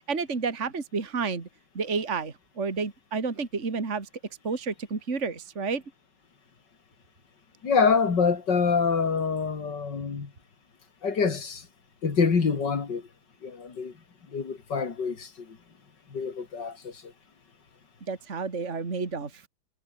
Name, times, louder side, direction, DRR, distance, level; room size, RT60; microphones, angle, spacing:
voice 1, 0.1-1.5 1.7-4.1 4.4-5.8 18.1-19.4, right 4 dB, 35° right, 2.7 m, -30 dB
voice 2, 7.6-10.3 11.0-11.7 12.0-13.0 13.4-13.9 14.3-15.6 16.1-17.1, left 5 dB, 55° left, 3.3 m, -26 dB
omnidirectional pair, 2.3 m